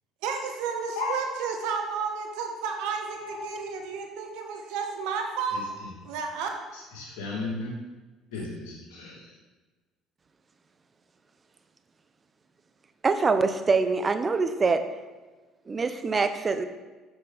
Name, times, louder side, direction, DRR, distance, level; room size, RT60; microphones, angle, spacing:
voice 1, 0.2-5.7 6.0-6.5, right 5 dB, 80° right, 3 dB, 1.2 m, -32 dB
voice 2, 3.2-3.5 5.5-5.6 6.7-7.7 8.3-9.3, left 3 dB, 85° left, -4 dB, 2.5 m, -35 dB
voice 3, 13.0-14.9 15.7-16.6, right 4 dB, 35° right, 10 dB, 0.8 m, -24 dB
7.8 x 6.1 x 4.1 m, 1.3 s
supercardioid pair, 70°, 0 cm